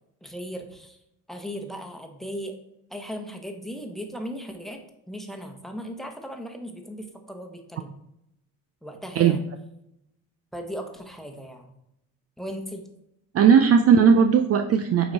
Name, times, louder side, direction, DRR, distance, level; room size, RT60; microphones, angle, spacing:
voice 1, 0.2-1.0 1.3-2.6 2.9-7.9 8.8-9.4 10.5-11.7 12.4-12.8, equal, ahead, 4 dB, 1.1 m, -37 dB
voice 2, 13.3-15.1, right 7 dB, 40° right, 7 dB, 0.4 m, -17 dB
8.8 x 3.0 x 4.0 m, 0.81 s
supercardioid pair, 90°, 38 cm